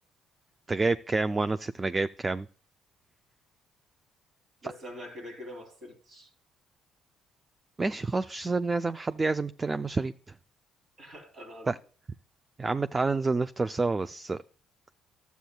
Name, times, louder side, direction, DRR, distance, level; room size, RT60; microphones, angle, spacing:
voice 1, 0.7-2.5 4.6-4.7 7.8-10.3 11.7-11.8 12.6-14.4, right 3 dB, 30° right, 0.3 m, -28 dB
voice 2, 4.6-6.3 11.0-11.7, left 1 dB, 55° right, 2.5 m, -44 dB
12.5 x 8.1 x 2.2 m
supercardioid pair, 60°, 0 cm